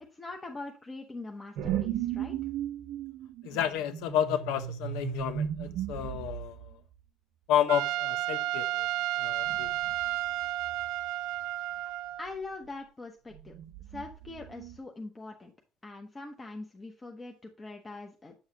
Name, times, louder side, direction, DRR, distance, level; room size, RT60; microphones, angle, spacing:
voice 1, 0.1-2.4 12.2-13.5 13.9-15.5 15.8-18.3, left 3 dB, 15° left, 0.9 m, -42 dB
sound 1, 1.6-6.7 9.4-10.2 10.4-10.9 13.3-14.8, right 10 dB, 55° right, 0.9 m, -36 dB
voice 2, 3.4-6.8 7.5-8.9 9.2-9.7, left 10 dB, 90° left, 1.1 m, -31 dB
Trumpet, 7.7-12.3, right 15 dB, 85° right, 0.5 m, -32 dB
8.6 x 7.1 x 2.8 m
cardioid pair, 175°, 0 cm